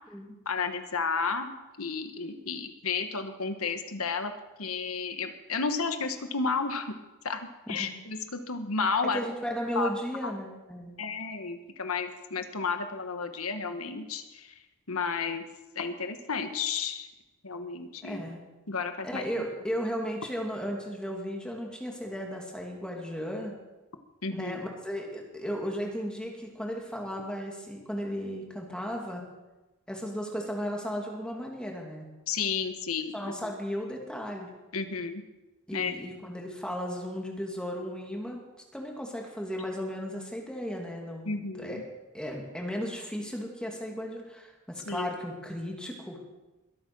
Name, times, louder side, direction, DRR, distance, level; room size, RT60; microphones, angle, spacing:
voice 1, 0.4-1.5 1.8-4.3 4.6-6.9 7.2-9.2 9.7-9.9 10.2-10.3 11.0-14.5 14.9-15.4 15.7-17.1 17.4-18.2 18.7-19.5 24.2-24.6 32.3-33.5 34.7-35.2 35.7-35.9 41.2-41.8 44.9-45.1, left 5 dB, 85° left, 8 dB, 1.4 m, -32 dB
voice 2, 9.1-11.0 18.0-18.4 19.0-23.5 24.3-29.3 29.9-32.1 33.1-34.5 35.7-38.4 38.7-41.8 42.1-46.2, equal, 5° left, 0 dB, 2.6 m, -35 dB
22.0 x 8.6 x 6.2 m, 1.1 s
head